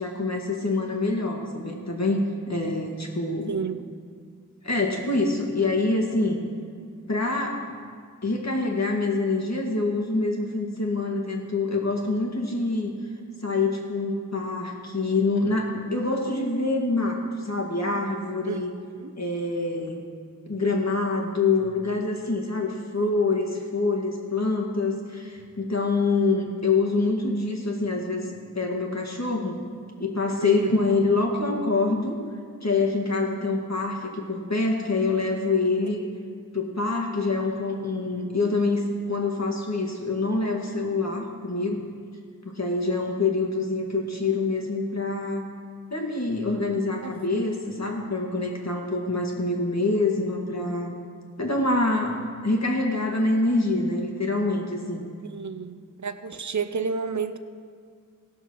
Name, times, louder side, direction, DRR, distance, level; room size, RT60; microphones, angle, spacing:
voice 1, 0.0-3.5 4.6-6.4 7.1-7.6 8.2-12.9 13.4-18.7 19.2-20.0 20.5-29.6 30.0-32.2 32.6-36.0 36.5-41.8 42.5-45.5 45.9-51.0 51.4-55.0, left 3 dB, 55° left, 1 dB, 1.9 m, -26 dB
voice 2, 3.5-3.8 18.5-19.1 30.4-30.8 33.1-33.2 35.9-36.0 47.0-47.1 55.3-57.4, right 5 dB, 60° right, 11 dB, 0.7 m, -31 dB
17.0 x 6.7 x 6.2 m, 2.1 s
wide cardioid pair, 55°, 32 cm